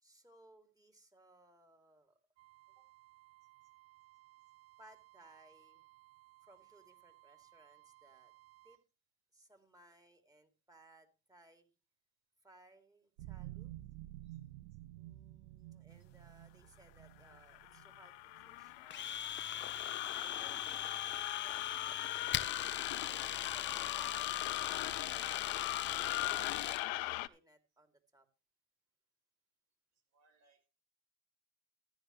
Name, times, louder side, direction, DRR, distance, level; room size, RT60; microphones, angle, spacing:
voice 1, 0.0-2.2 4.8-5.9 6.4-8.3 8.6-8.8 9.3-11.7 12.4-13.7 15.0-19.7 20.1-22.3 22.6-22.8 23.1-24.8 25.8-28.3, right 1 dB, 10° right, 6 dB, 2.8 m, -63 dB
sound 1, 2.4-8.8 13.2-19.2, right 16 dB, 80° right, 0.7 m, -54 dB
sound 2, 17.3-27.3, left 19 dB, 75° left, 0.7 m, -40 dB
Domestic sounds home sounds, 18.9-26.9, left 10 dB, 35° left, 0.8 m, -40 dB
voice 2, 25.4-26.2 30.1-30.7, right 4 dB, 65° right, 4 dB, 4.6 m, -71 dB
14.5 x 10.5 x 3.2 m, 0.30 s
hypercardioid pair, 75°, 31 cm